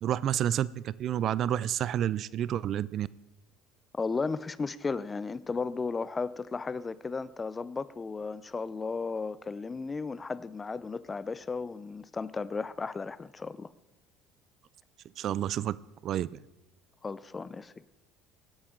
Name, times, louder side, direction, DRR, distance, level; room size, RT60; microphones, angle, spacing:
voice 1, 0.0-3.1 15.2-15.8 16.0-16.4, right 11 dB, 50° right, 0.3 m, -29 dB
voice 2, 4.0-13.7 17.0-18.0, left 4 dB, 20° left, 0.5 m, -35 dB
16.5 x 11.5 x 3.8 m
supercardioid pair, 110°, 0 cm